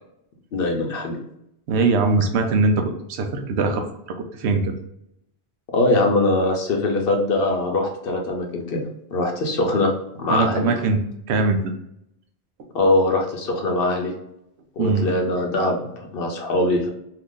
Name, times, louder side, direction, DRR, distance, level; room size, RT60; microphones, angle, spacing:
voice 1, 0.5-1.2 5.7-8.8 9.1-10.7 12.7-14.1 14.8-16.9, left 2 dB, 65° left, 2 dB, 0.8 m, -22 dB
voice 2, 1.7-4.7 10.3-11.0 11.3-11.7 14.8-15.1, right 3 dB, 85° right, 5 dB, 0.9 m, -21 dB
2.8 x 2.5 x 3.6 m, 0.79 s
omnidirectional pair, 1.1 m